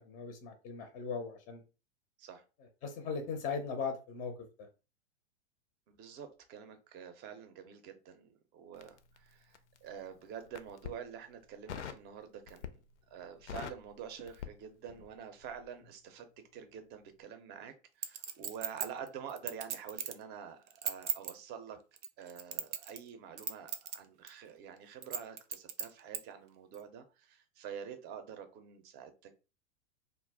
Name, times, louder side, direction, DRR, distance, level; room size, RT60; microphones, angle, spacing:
voice 1, 0.0-1.6 2.8-4.7, left 5 dB, 25° left, 5 dB, 0.5 m, -39 dB
voice 2, 5.9-12.8 13.1-16.3 16.5-21.8 22.2-29.3, right 7 dB, 30° right, 7 dB, 0.6 m, -47 dB
Crackle, 8.7-9.9 10.4-11.0 11.7-12.1 12.5-12.9 13.2-15.2 15.4-15.7, left 9 dB, 80° left, 0.5 m, -44 dB
Chink clink, 18.0-20.2 20.7-21.3 22.0-23.1 23.4-24.0 24.3-24.4 25.0-26.2 26.7-26.8, right 7 dB, 85° right, 0.6 m, -37 dB
2.4 x 2.0 x 3.5 m, 0.32 s
hypercardioid pair, 110°, 34 cm